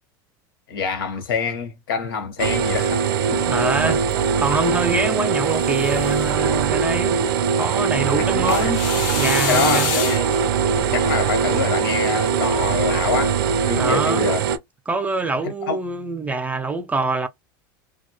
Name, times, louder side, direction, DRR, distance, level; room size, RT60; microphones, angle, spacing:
voice 1, 0.7-3.6 3.9-4.0 8.0-8.7 9.5-10.3 10.8-13.4 13.7-14.4 15.7-15.8, left 5 dB, 85° left, 1.0 m, -25 dB
sound 1, 2.4-14.6, right 7 dB, 85° right, 0.5 m, -21 dB
sound 2, 3.4-4.3 5.3-6.4 8.5-10.5, left 10 dB, 65° left, 0.5 m, -29 dB
voice 2, 3.5-4.0 4.4-7.2 7.6-8.8 9.2-9.9 13.8-14.3 14.9-17.3, right 3 dB, 15° right, 0.5 m, -24 dB
2.2 x 2.0 x 2.8 m
supercardioid pair, 105°, 12 cm